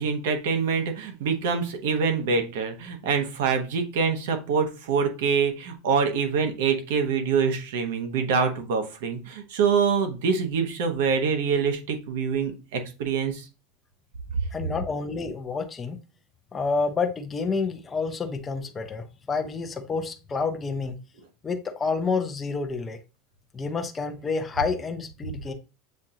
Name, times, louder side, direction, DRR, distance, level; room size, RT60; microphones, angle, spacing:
voice 1, 0.0-13.5, right 5 dB, 80° right, 6 dB, 1.0 m, -25 dB
voice 2, 14.5-16.0 16.5-21.0 21.4-23.0 23.5-25.5, left 4 dB, 15° left, 5 dB, 0.5 m, -29 dB
7.3 x 2.5 x 2.8 m, 0.31 s
supercardioid pair, 165°, 0 cm